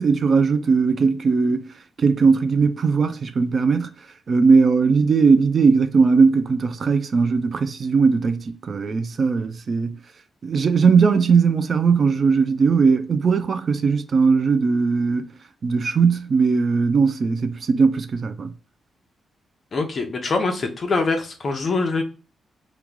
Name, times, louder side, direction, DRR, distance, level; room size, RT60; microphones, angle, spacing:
voice 1, 0.0-1.7 2.0-3.9 4.3-10.0 10.4-15.3 15.6-18.5, right 5 dB, 45° right, 0.3 m, -19 dB
voice 2, 19.7-22.0, left 3 dB, 40° left, 0.7 m, -23 dB
3.0 x 2.3 x 3.6 m
cardioid pair, 130°, 0 cm